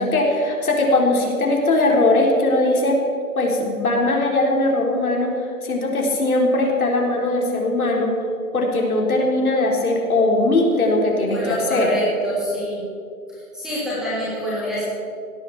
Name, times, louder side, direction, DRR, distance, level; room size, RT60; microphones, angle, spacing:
voice 1, 0.0-3.0 3.4-8.1 8.5-11.9, left 2 dB, 75° left, 0 dB, 3.9 m, -20 dB
voice 2, 11.3-12.8 13.3-14.8, equal, ahead, -10 dB, 3.2 m, -26 dB
17.0 x 9.2 x 7.1 m, 2.3 s
hypercardioid pair, 170°, 43 cm